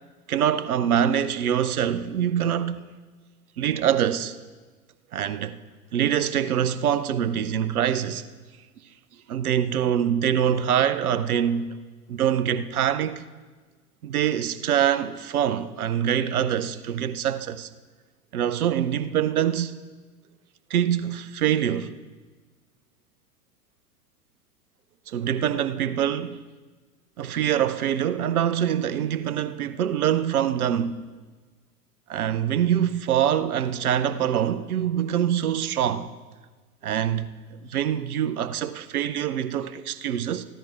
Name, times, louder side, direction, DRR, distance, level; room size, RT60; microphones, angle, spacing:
voice 1, 0.3-2.9 3.6-4.4 5.1-5.6 5.9-8.2 9.3-11.8 12.1-13.2 14.0-17.7 18.3-19.8 20.7-21.9 25.1-26.4 27.2-31.0 32.1-36.1 36.8-37.3 37.6-40.5, right 9 dB, 70° right, 0.8 m, -24 dB
14.5 x 12.5 x 4.6 m
figure-of-eight pair, 95°, 46 cm